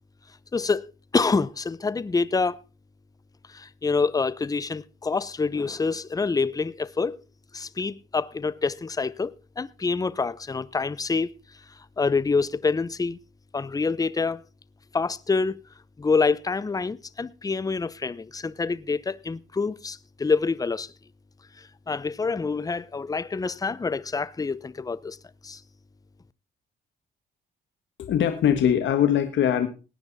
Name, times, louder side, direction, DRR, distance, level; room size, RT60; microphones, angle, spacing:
voice 1, 0.5-2.6 3.5-7.2 7.5-11.3 12.0-13.2 13.5-14.4 14.9-15.6 16.0-20.9 21.6-25.2 25.4-25.6, left 4 dB, 20° left, 0.7 m, -26 dB
voice 2, 28.0-29.7, left 9 dB, 70° left, 1.6 m, -21 dB
18.0 x 9.7 x 4.1 m
cardioid pair, 90°, 20 cm